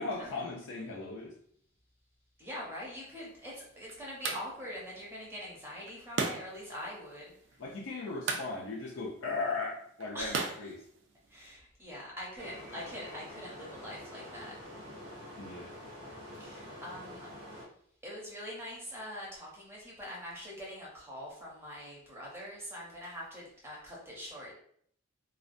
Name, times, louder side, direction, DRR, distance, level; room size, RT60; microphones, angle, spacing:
voice 1, 0.0-1.4 7.6-10.8 15.4-15.7, left 3 dB, 65° left, -2 dB, 0.4 m, -37 dB
voice 2, 2.4-7.3 10.1-10.7 11.3-14.6 16.4-17.3 18.0-24.5, equal, 10° right, -4 dB, 0.6 m, -43 dB
sound 1, 3.0-11.5, right 4 dB, 60° right, 0.4 m, -40 dB
sound 2, 12.4-17.7, left 1 dB, 80° right, 0.7 m, -47 dB
2.3 x 2.1 x 2.5 m, 0.65 s
head